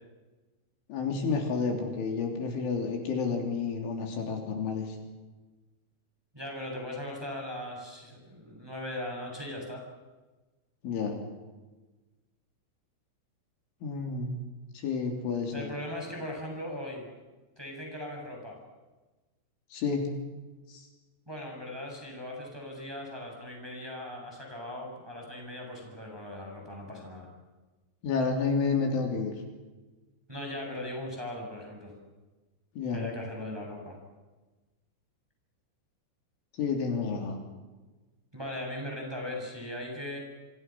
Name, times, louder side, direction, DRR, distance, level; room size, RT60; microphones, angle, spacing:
voice 1, 0.9-5.0 10.8-11.2 13.8-14.4 14.7-15.7 19.7-20.0 20.7-20.9 28.0-29.3 32.8-33.1 36.6-37.4, left 5 dB, 70° left, 3 dB, 5.8 m, -30 dB
voice 2, 6.3-9.8 15.5-17.1 17.6-18.6 21.3-27.3 30.3-31.9 32.9-34.0 38.3-40.2, left 1 dB, 5° right, 0 dB, 7.1 m, -39 dB
28.5 x 26.0 x 6.2 m, 1.2 s
omnidirectional pair, 5.8 m